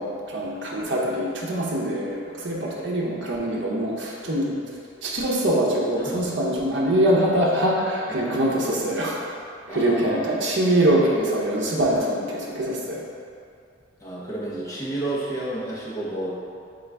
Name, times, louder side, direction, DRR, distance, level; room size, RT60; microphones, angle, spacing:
voice 1, 0.0-4.6 5.0-9.2 9.7-13.0, right 1 dB, 65° right, -4 dB, 0.7 m, -23 dB
voice 2, 6.0-6.3 8.1-8.2 9.7-10.3 14.0-16.4, right 1 dB, 15° left, -7 dB, 0.8 m, -31 dB
3.9 x 3.8 x 3.4 m, 2.4 s
head